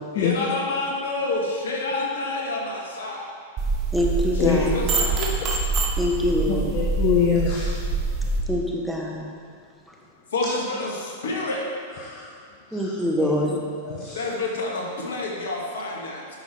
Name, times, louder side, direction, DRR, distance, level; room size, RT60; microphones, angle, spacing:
voice 1, 0.1-3.2 4.3-5.4 10.3-11.6 14.1-16.2, left 2 dB, 70° left, -2 dB, 1.7 m, -28 dB
sound 1, 3.6-8.4, right 4 dB, 35° right, 1.0 m, -25 dB
voice 2, 3.9-4.7 6.0-6.6 8.5-9.2 12.7-13.6, left 1 dB, ahead, -1 dB, 1.1 m, -24 dB
voice 3, 6.5-7.8 12.0-12.3 12.7-13.3 13.8-14.2, left 7 dB, 45° left, -2 dB, 1.0 m, -25 dB
8.9 x 6.1 x 4.2 m, 2.2 s
figure-of-eight pair, 100°, 0 cm